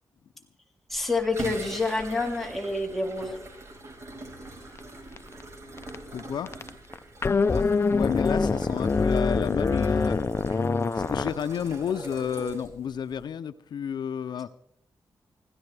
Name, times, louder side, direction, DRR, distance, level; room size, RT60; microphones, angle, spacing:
voice 1, 0.9-3.4, left 3 dB, ahead, 0 dB, 2.9 m, -28 dB
sound 1, 0.9-13.2, right 2 dB, 40° right, 5.0 m, -42 dB
sound 2, 4.8-4.9 5.2-5.4 5.8-6.2 6.5-11.3, left 4 dB, 35° left, 0.6 m, -24 dB
voice 2, 6.1-6.5 7.5-10.2 10.9-14.5, left 8 dB, 75° left, 12 dB, 0.5 m, -31 dB
25.5 x 16.0 x 3.4 m, 0.71 s
wide cardioid pair, 120°, 7 cm